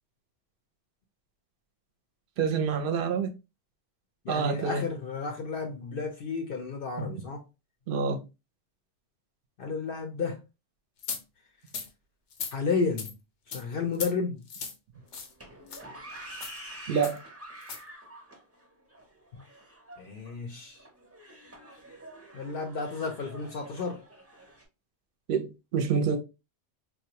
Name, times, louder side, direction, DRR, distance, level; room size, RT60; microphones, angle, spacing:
voice 1, 2.4-3.3 4.3-4.8 7.0-7.1 7.9-8.2 16.9-17.2 25.3-26.2, right 6 dB, 55° right, 0.7 m, -27 dB
voice 2, 4.2-7.4 9.6-10.4 12.5-13.1 13.5-14.4 19.4-19.5 20.0-20.9 22.3-24.0, left 4 dB, 60° left, 0.7 m, -32 dB
sound 1, 11.0-11.2 11.7-11.9 12.3-12.5 13.0-13.1 13.5-13.6 13.9-14.1 14.5-14.7 15.1-15.3 15.7-15.8 16.3-16.6 17.0-17.2 17.6-17.8, left 5 dB, 90° left, 1.0 m, -36 dB
sound 2, 15.0-24.6, right 1 dB, 15° right, 0.6 m, -47 dB
4.0 x 2.2 x 2.8 m
omnidirectional pair, 1.2 m